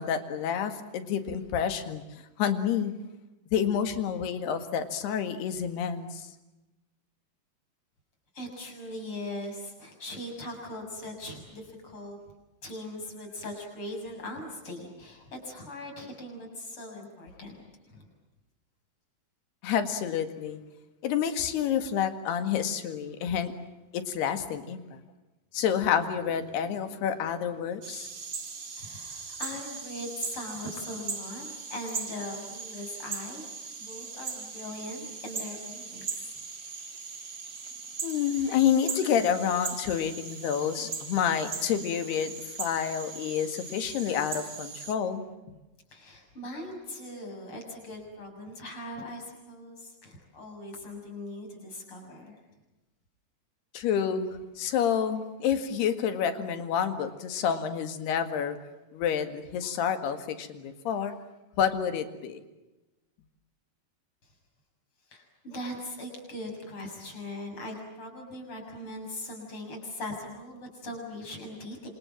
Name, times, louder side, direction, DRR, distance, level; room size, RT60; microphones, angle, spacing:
voice 1, 0.0-2.0 2.4-2.9 3.5-6.3 19.6-20.6 21.0-23.5 23.9-25.0 25.5-28.1 38.0-42.3 42.6-45.2 53.7-58.6 58.9-61.1 61.6-62.4, left 8 dB, 75° left, 9 dB, 3.9 m, -28 dB
voice 2, 8.3-12.2 12.6-18.1 28.8-36.4 45.9-52.4 64.2-64.3 65.1-71.9, left 1 dB, 30° left, 2 dB, 7.5 m, -40 dB
sound 1, 27.8-45.0, right 5 dB, 35° right, 1.9 m, -39 dB
27.5 x 27.0 x 7.6 m, 1.0 s
omnidirectional pair, 4.8 m